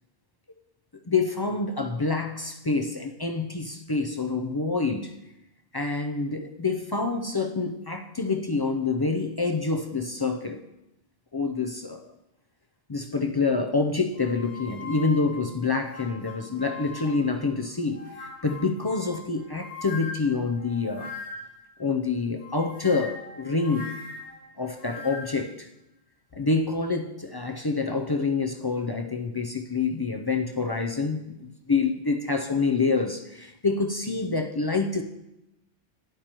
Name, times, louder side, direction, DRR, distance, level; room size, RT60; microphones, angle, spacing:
voice 1, 1.1-5.1 5.7-10.6 11.3-12.1 12.9-21.1 21.8-23.9 24.6-25.7 26.3-35.0, left 4 dB, 40° left, 4 dB, 0.3 m, -27 dB
sound 1, 14.2-17.4 17.9-21.6 22.4-25.5, left 4 dB, 85° left, 4.0 m, -41 dB
12.5 x 10.5 x 3.0 m, 0.91 s
omnidirectional pair, 1.1 m